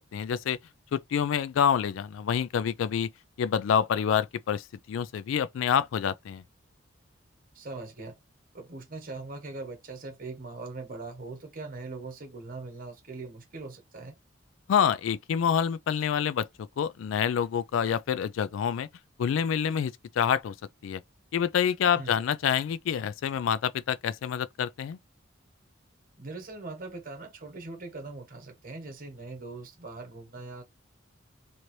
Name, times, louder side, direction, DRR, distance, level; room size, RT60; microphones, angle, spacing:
voice 1, 0.1-0.6 0.9-3.1 3.4-6.4 14.7-18.9 19.2-20.5 20.8-21.0 21.3-25.0, left 8 dB, 80° left, 0.3 m, -27 dB
voice 2, 7.5-8.2 8.5-14.1 22.0-22.1 26.2-30.6, right 3 dB, 45° right, 1.1 m, -41 dB
2.9 x 2.6 x 3.1 m
head